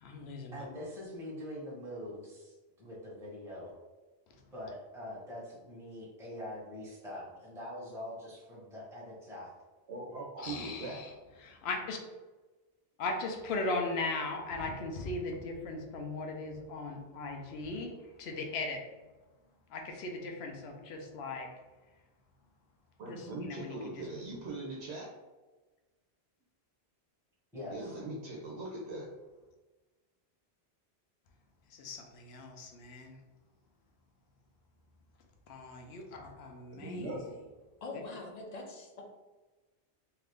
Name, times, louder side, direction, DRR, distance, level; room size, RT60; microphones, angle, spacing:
voice 1, 0.0-0.6 10.4-11.1 11.4-12.0 13.0-18.9 19.7-21.5 23.1-23.9 31.7-33.2 35.5-37.2, left 3 dB, 80° left, 3 dB, 0.8 m, -38 dB
voice 2, 0.5-3.7 4.5-9.5 27.5-28.0, left 1 dB, 5° right, -6 dB, 0.8 m, -44 dB
voice 3, 9.9-11.1 23.0-25.1 27.7-29.1 36.7-37.3, right 2 dB, 90° right, -3 dB, 0.9 m, -41 dB
voice 4, 37.8-39.0, left 3 dB, 50° left, 1 dB, 0.5 m, -43 dB
2.8 x 2.5 x 3.4 m, 1.2 s
omnidirectional pair, 1.1 m